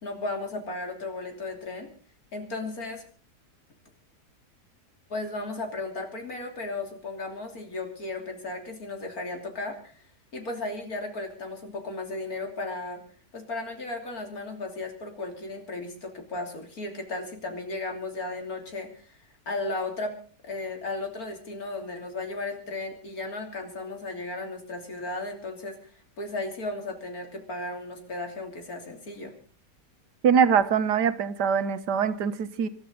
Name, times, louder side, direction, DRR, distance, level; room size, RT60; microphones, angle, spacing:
voice 1, 0.0-1.9 2.3-3.0 5.1-10.0 10.3-13.0 13.3-19.2 19.5-20.2 20.4-29.3, left 2 dB, 60° left, 3 dB, 3.5 m, -35 dB
voice 2, 30.2-32.7, right 7 dB, 85° right, 11 dB, 1.7 m, -23 dB
26.0 x 12.5 x 3.9 m, 0.41 s
omnidirectional pair, 1.8 m